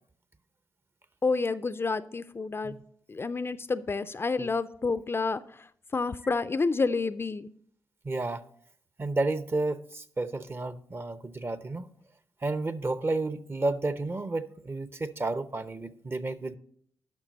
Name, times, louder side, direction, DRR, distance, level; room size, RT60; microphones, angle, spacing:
voice 1, 1.2-2.8 3.1-5.4 5.9-7.5, left 4 dB, 30° left, 0.4 m, -29 dB
voice 2, 8.0-8.4 9.0-11.9 12.4-16.6, right 2 dB, 30° right, 0.7 m, -31 dB
10.5 x 5.8 x 4.0 m
hypercardioid pair, 40°, 8 cm